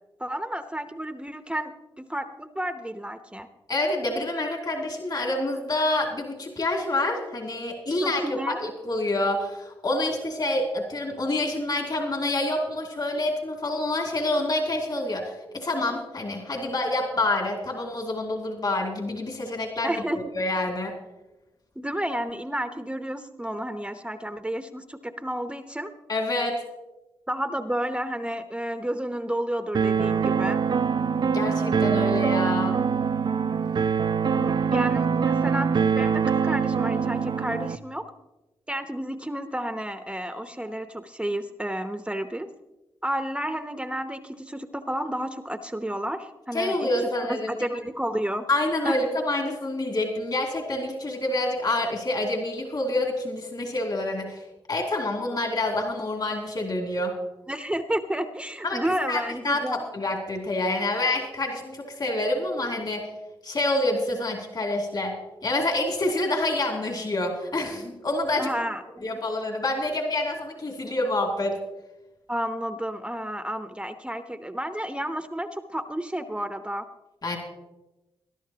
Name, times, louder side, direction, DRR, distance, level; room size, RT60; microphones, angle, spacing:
voice 1, 0.2-3.5 8.0-8.6 19.8-20.2 21.8-25.9 27.3-30.6 34.3-38.1 38.7-42.5 43.0-46.9 47.3-48.4 48.8-49.1 57.5-59.8 68.4-69.0 72.3-76.9, right 1 dB, 10° right, 9 dB, 0.8 m, -31 dB
voice 2, 3.7-20.9 26.1-26.6 31.2-32.7 46.5-47.5 48.5-54.4 54.7-57.1 58.6-58.8 59.1-63.0 63.4-65.1 65.4-68.5 69.0-71.6 77.2-77.4, left 2 dB, 45° left, 1 dB, 2.6 m, -27 dB
sound 1, 29.7-37.8, right 6 dB, 50° right, 0.5 m, -24 dB
20.0 x 11.5 x 2.9 m, 1.0 s
supercardioid pair, 45°, 10 cm